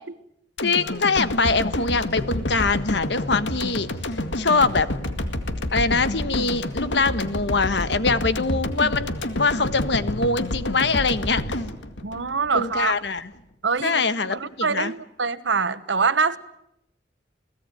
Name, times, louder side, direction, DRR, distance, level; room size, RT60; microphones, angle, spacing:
sound 1, 0.6-12.8 13.2-13.3, left 1 dB, 90° left, 2.1 m, -28 dB
voice 1, 0.6-3.9 4.3-4.9 5.7-11.4 12.5-13.3 13.8-14.9, left 4 dB, 70° left, 13 dB, 1.4 m, -23 dB
voice 2, 12.0-12.9 13.6-14.0 14.3-16.4, right 5 dB, 85° right, 14 dB, 1.2 m, -24 dB
29.5 x 18.0 x 9.2 m, 0.80 s
head